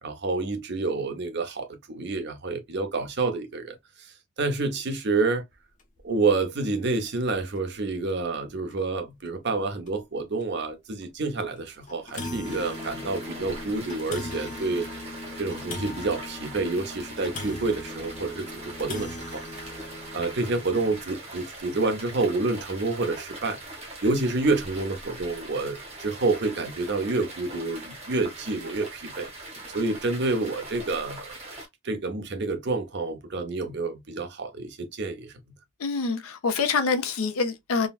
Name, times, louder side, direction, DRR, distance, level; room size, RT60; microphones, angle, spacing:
voice 1, 0.0-5.4 6.0-14.9 15.4-19.9 20.1-23.6 24.0-31.3 31.8-35.3, right 3 dB, 50° right, 0.6 m, -28 dB
sound 1, 5.8-6.0 6.4-6.5 6.9-7.0 8.1-8.2 8.7-8.8 9.3-9.4 9.9-10.0 11.0-11.2 11.6-11.7 11.9-21.0, left 2 dB, 35° left, 0.6 m, -39 dB
sound 2, 12.4-31.7, right 2 dB, 30° right, 0.9 m, -42 dB
voice 2, 35.8-37.9, left 4 dB, 80° left, 0.6 m, -26 dB
3.7 x 2.1 x 2.3 m
head